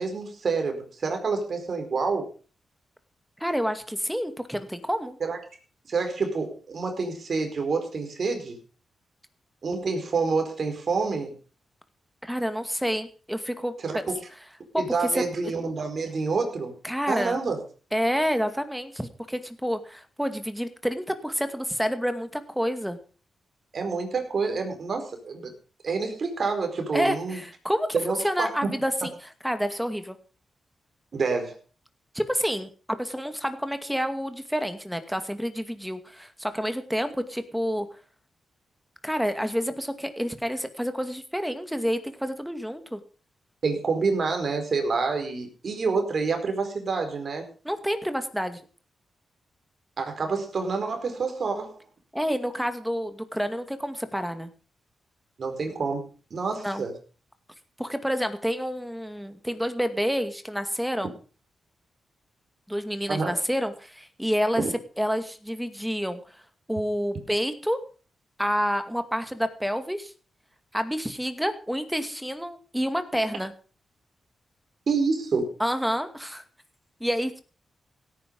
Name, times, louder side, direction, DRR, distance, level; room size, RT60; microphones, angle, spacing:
voice 1, 0.0-2.3 5.2-5.4 5.9-8.6 9.6-11.3 13.8-14.2 14.8-16.7 17.1-17.6 23.7-25.5 25.8-27.4 27.9-28.7 31.1-31.6 43.6-47.4 50.0-51.8 55.4-57.0 63.1-63.3 64.6-64.7 74.9-75.5, right 4 dB, 60° right, 5 dB, 4.9 m, -28 dB
voice 2, 3.4-5.2 12.2-14.0 14.7-14.8 15.1-15.5 16.8-17.4 17.9-23.0 26.9-29.1 29.4-30.2 32.1-32.7 33.0-37.9 39.0-43.0 47.6-48.6 52.1-54.5 56.6-56.8 57.8-61.1 62.7-64.6 65.0-66.4 66.7-67.8 68.4-70.1 70.7-73.5 75.6-76.4 77.0-77.4, equal, ahead, 9 dB, 2.3 m, -28 dB
17.0 x 9.8 x 5.4 m, 0.38 s
cardioid pair, 70°, 0 cm